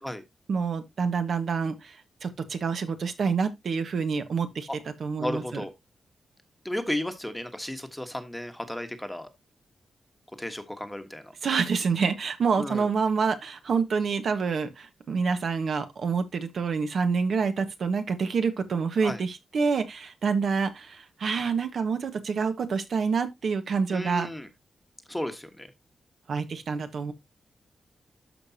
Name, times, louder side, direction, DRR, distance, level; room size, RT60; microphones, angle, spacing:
voice 1, 0.5-2.0 2.2-4.7 5.0-5.6 11.4-24.3 26.3-27.1, right 5 dB, 65° right, 1.5 m, -27 dB
voice 2, 5.2-5.7 6.6-9.3 10.4-11.3 12.6-12.9 19.0-19.2 23.9-24.5 25.1-25.7, left 1 dB, 5° left, 1.3 m, -34 dB
13.0 x 5.2 x 2.8 m
wide cardioid pair, 120°, 0 cm